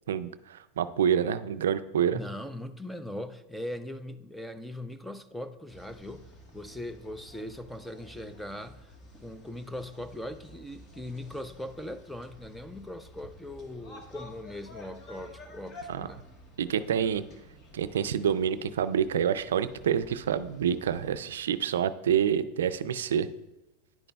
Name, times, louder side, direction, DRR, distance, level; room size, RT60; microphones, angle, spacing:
voice 1, 0.1-2.2 15.9-16.1 16.6-17.2 17.7-23.3, right 8 dB, 90° right, 0.3 m, -27 dB
voice 2, 2.1-8.9 9.2-16.3 16.9-17.1, left 1 dB, ahead, 0.4 m, -40 dB
sound 1, 5.7-21.1, left 1 dB, 35° left, 1.3 m, -51 dB
10.5 x 5.0 x 2.3 m
supercardioid pair, 120°, 0 cm